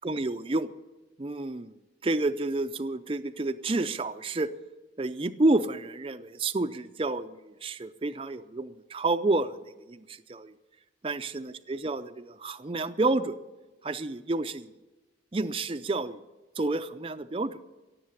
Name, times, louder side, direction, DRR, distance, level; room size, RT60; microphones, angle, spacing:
voice 1, 0.0-0.7 1.2-1.7 2.0-4.5 5.0-9.5 9.9-10.5 11.0-13.4 13.8-14.7 15.3-16.2 16.6-17.6, right 2 dB, 30° right, 9 dB, 0.5 m, -29 dB
17.0 x 7.8 x 9.6 m, 1.1 s
head